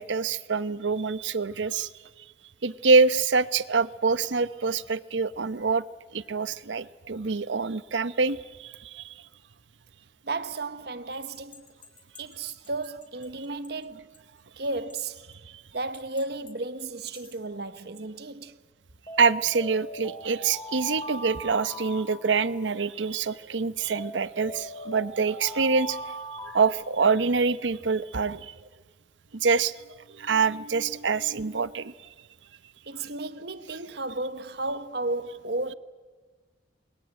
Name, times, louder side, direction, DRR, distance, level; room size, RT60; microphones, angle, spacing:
voice 1, 0.0-1.9 2.6-5.8 6.1-9.1 19.2-26.0 26.5-28.5 29.3-29.7 30.1-31.9, right 4 dB, 90° right, 0.8 m, -25 dB
voice 2, 10.2-11.7 12.2-14.2 14.6-15.2 15.7-18.6 32.9-35.7, right 2 dB, 60° right, 1.1 m, -33 dB
sound 1, 11.3-13.3 13.6-13.7 14.1-14.2 14.9-15.3 15.9-16.5 17.0-17.4 19.1-22.8 23.9-26.6, equal, 30° left, 4.0 m, -40 dB
28.5 x 21.5 x 9.0 m
head